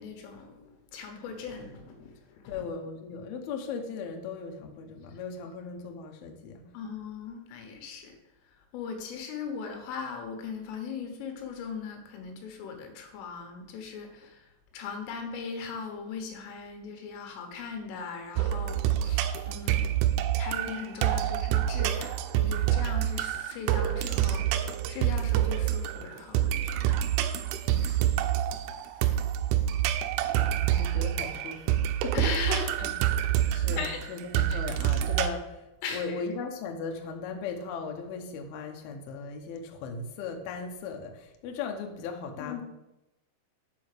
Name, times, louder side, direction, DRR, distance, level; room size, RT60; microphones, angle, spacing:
voice 1, 0.0-2.7 6.7-8.2 8.5-19.9 20.4-24.6 24.9-27.0 27.7-28.2 30.0-30.6 32.1-32.9 33.8-34.0 34.5-34.6 35.8-36.2 42.4-42.6, left 5 dB, 90° left, 5 dB, 3.8 m, -39 dB
voice 2, 2.5-6.7 30.6-32.3 32.8-32.9 33.5-42.6, left 5 dB, 70° left, 4 dB, 2.5 m, -37 dB
sound 1, 18.4-35.3, right 11 dB, 85° right, 3.1 m, -27 dB
7.9 x 5.2 x 6.7 m, 0.94 s
omnidirectional pair, 5.6 m